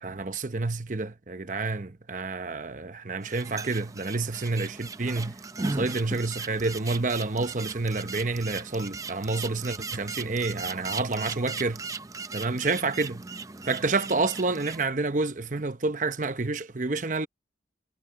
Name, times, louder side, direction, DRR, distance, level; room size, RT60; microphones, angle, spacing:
voice 1, 0.0-11.8 12.3-13.2 13.7-17.3, right 3 dB, 45° right, 0.9 m, -29 dB
sound 1, 3.2-14.8, right 3 dB, 20° right, 0.5 m, -38 dB
head